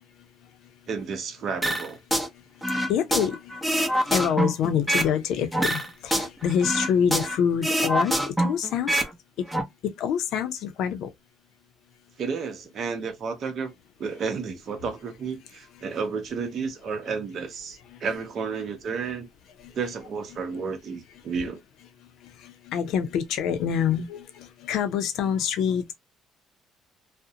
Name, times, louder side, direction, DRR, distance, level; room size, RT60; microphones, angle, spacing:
voice 1, 0.9-2.0 12.2-13.7 14.0-19.3 19.7-21.6, right 5 dB, 55° right, 0.7 m, -31 dB
sound 1, 1.6-2.3 2.6-5.2 5.5-7.4 7.6-9.1 9.4-9.6, right 1 dB, 5° right, 0.6 m, -25 dB
voice 2, 2.9-3.4 4.1-9.0 9.8-11.1 22.4-25.9, left 8 dB, 75° left, 0.5 m, -26 dB
2.4 x 2.1 x 2.7 m
cardioid pair, 95°, 0 cm